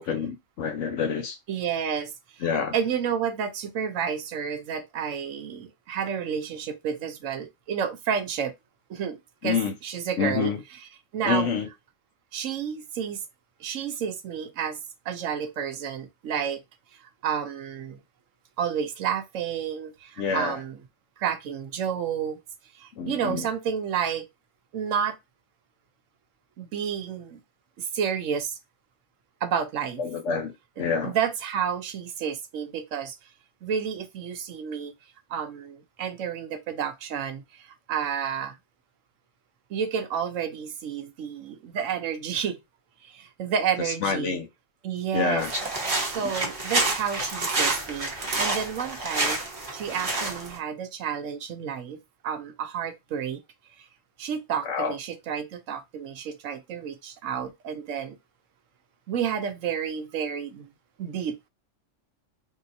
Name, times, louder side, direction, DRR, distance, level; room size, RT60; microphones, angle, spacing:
voice 1, 0.0-1.4 2.4-2.7 9.4-9.7 10.2-10.6 11.2-11.7 20.2-20.6 23.0-23.5 30.0-31.1 43.8-44.5 45.1-45.5 54.6-55.0, left 6 dB, 75° left, 1.0 m, -27 dB
voice 2, 1.5-2.4 2.7-8.5 8.9-10.5 11.1-11.5 12.3-13.2 13.6-14.8 15.1-16.6 17.2-18.0 18.6-20.8 21.2-22.4 22.7-24.3 24.7-25.2 26.6-27.4 27.8-28.6 29.4-30.0 31.0-33.1 33.6-34.9 35.3-38.5 39.7-42.6 43.0-44.4 44.8-45.4 46.1-49.4 49.7-53.4 53.8-53.9 54.2-58.2 59.1-60.7 61.0-61.3, right 7 dB, 80° right, 1.1 m, -30 dB
sound 1, 45.4-50.6, right 2 dB, 30° right, 0.9 m, -28 dB
3.8 x 2.8 x 2.6 m
omnidirectional pair, 1.3 m